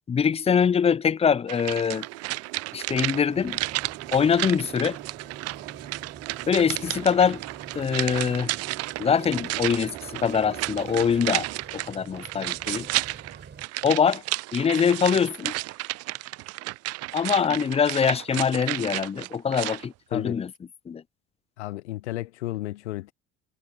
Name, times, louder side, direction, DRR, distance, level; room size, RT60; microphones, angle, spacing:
voice 1, 0.1-2.1 2.7-3.6 4.1-5.0 6.5-7.4 7.7-8.5 9.0-11.5 11.7-12.9 13.8-14.2 14.5-15.5 17.1-20.5 20.9-21.0, left 7 dB, 20° left, 0.5 m, -23 dB
sound 1, 1.5-19.9 20.1-20.2, right 19 dB, 45° right, 0.6 m, -32 dB
sound 2, 1.9-11.6, right 25 dB, 70° right, 6.1 m, -43 dB
sound 3, 3.3-13.7, right 6 dB, 30° right, 7.0 m, -46 dB
voice 2, 21.6-23.1, left 16 dB, 80° left, 0.6 m, -33 dB
hypercardioid pair, 65°, 34 cm